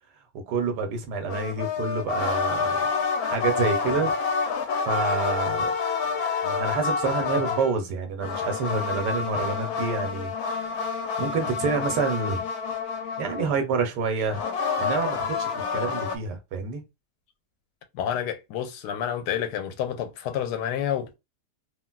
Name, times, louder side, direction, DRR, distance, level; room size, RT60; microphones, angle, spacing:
voice 1, 0.5-2.8 3.1-4.1 4.8-5.7 6.4-10.8 11.2-12.4 13.2-14.4 14.8-16.8, right 4 dB, 80° right, 1.3 m, -28 dB
sound 1, 1.3-7.8 8.2-13.6 14.3-16.2, left 5 dB, 70° left, 1.0 m, -28 dB
voice 2, 17.9-21.2, left 9 dB, 90° left, 1.2 m, -29 dB
3.2 x 2.5 x 2.2 m
omnidirectional pair, 1.8 m